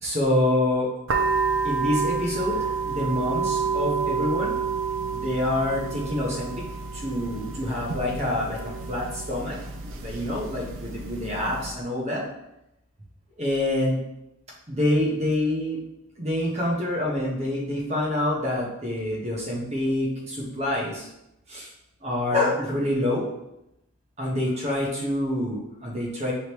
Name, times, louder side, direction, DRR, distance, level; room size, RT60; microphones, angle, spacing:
voice 1, 0.0-0.9 1.6-4.5 5.1-6.6 6.9-12.2 13.4-14.0 14.7-15.8 16.2-21.1 21.5-21.7 22.0-23.2 24.2-26.3, left 1 dB, 30° right, -3 dB, 1.0 m, -26 dB
sound 1, 1.1-11.7, right 5 dB, 65° right, 0.5 m, -29 dB
5.0 x 3.2 x 3.0 m, 0.86 s
head